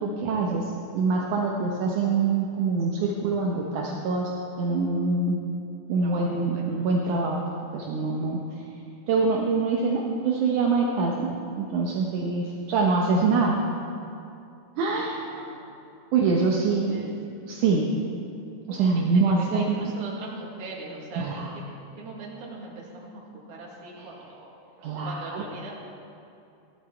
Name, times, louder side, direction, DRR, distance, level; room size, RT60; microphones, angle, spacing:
voice 1, 0.0-4.3 4.6-5.4 5.9-7.4 7.7-8.6 9.1-11.3 11.5-13.6 14.8-15.2 16.1-17.0 17.5-17.9 18.7-19.9 21.2-21.5 24.8-25.4, right 4 dB, 75° right, -2 dB, 2.3 m, -25 dB
voice 2, 6.5-6.9 15.2-15.8 16.6-17.1 18.7-24.5 25.0-25.7, right 2 dB, 50° right, -3 dB, 2.8 m, -41 dB
16.0 x 11.5 x 4.5 m, 2.7 s
omnidirectional pair, 3.8 m